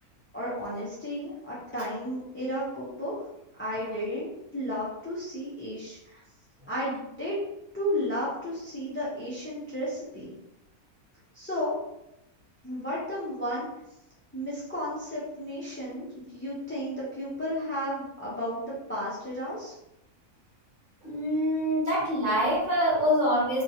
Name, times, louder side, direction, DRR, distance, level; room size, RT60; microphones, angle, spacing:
voice 1, 0.3-3.2 3.6-6.2 6.7-7.4 7.7-10.3 11.3-11.8 12.6-13.7 14.3-19.7, equal, 15° left, -8 dB, 0.4 m, -33 dB
voice 2, 21.0-23.6, equal, 35° right, -7 dB, 1.0 m, -25 dB
2.8 x 2.4 x 2.8 m, 0.86 s
omnidirectional pair, 1.6 m